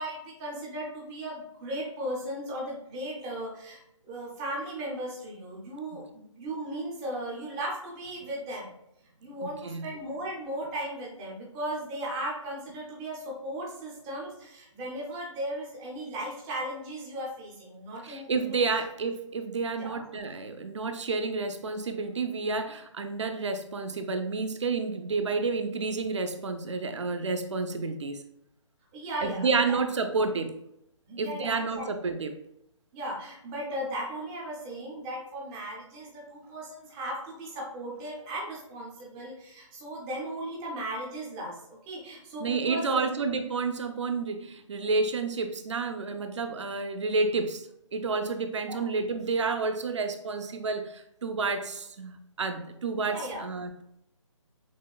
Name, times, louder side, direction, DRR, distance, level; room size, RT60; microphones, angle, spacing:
voice 1, 0.0-8.7 9.2-18.6 19.7-20.0 28.9-29.8 31.1-31.9 32.9-43.0 48.7-48.8 52.9-53.4, right 1 dB, 10° right, -4 dB, 0.4 m, -36 dB
voice 2, 9.4-9.9 18.0-28.2 29.2-30.6 31.2-32.3 42.4-47.7 47.9-53.8, right 4 dB, 65° right, 7 dB, 0.5 m, -30 dB
6.0 x 2.2 x 2.3 m, 0.80 s
figure-of-eight pair, 155°, 17 cm